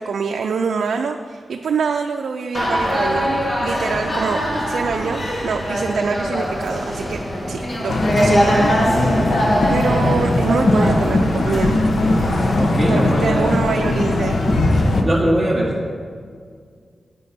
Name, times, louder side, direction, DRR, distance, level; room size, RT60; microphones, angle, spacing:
voice 1, 0.0-4.4 4.7-7.2 7.5-9.3 9.7-11.8 12.9-14.4, right 5 dB, 90° right, 4 dB, 0.4 m, -25 dB
sound 1, 2.5-12.6, equal, 40° left, 1.9 m, -22 dB
sound 2, 7.9-15.0, left 2 dB, 70° left, 1.0 m, -19 dB
voice 2, 12.6-13.6 15.0-15.9, right 1 dB, 5° right, -5 dB, 1.5 m, -20 dB
9.7 x 9.2 x 4.2 m, 2.1 s
wide cardioid pair, 100°, 0 cm